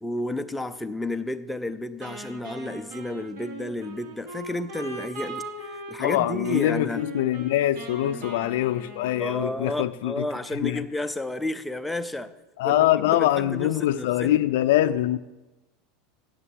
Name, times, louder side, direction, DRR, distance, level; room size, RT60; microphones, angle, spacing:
voice 1, 0.0-5.4 5.9-7.0 8.1-8.3 9.2-12.3 12.6-14.4, left 1 dB, 5° left, 0.4 m, -31 dB
Wind instrument woodwind instrument, 2.0-9.9, right 2 dB, 75° right, 4.2 m, -40 dB
voice 2, 6.0-10.3 10.6-10.8 12.6-15.2, left 13 dB, 65° left, 0.4 m, -23 dB
9.9 x 8.1 x 7.7 m
supercardioid pair, 180°, 0 cm